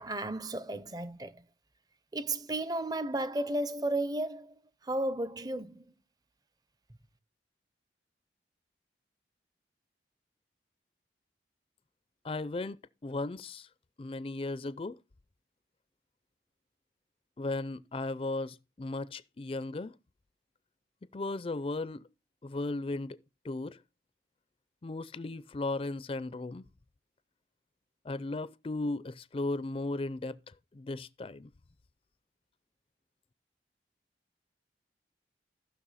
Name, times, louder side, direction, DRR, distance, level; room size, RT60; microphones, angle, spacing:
voice 1, 0.0-1.4 2.1-4.5 4.8-5.8, right 1 dB, 20° right, 0.6 m, -33 dB
voice 2, 12.2-13.7 14.0-15.0 17.4-19.9 21.1-22.1 22.4-23.2 23.4-23.8 24.8-26.6 28.0-31.5, left 2 dB, 30° left, 0.4 m, -36 dB
15.0 x 6.1 x 4.1 m
head